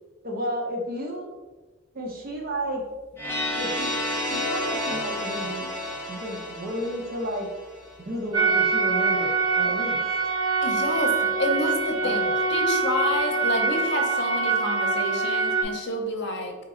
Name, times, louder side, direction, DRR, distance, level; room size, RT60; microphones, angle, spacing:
voice 1, 0.2-1.3 1.9-2.8 3.6-3.9 4.3-5.7 6.1-7.5 8.0-10.0 12.0-12.3, right 1 dB, 45° right, 0 dB, 0.7 m, -32 dB
sound 1, 3.2-8.0, left 1 dB, 10° left, 0.8 m, -31 dB
sound 2, 8.3-15.6, right 4 dB, 85° right, 0.9 m, -24 dB
voice 2, 10.6-12.2 12.5-16.6, left 1 dB, 55° left, 2 dB, 0.7 m, -28 dB
3.9 x 2.9 x 3.7 m, 1.2 s
head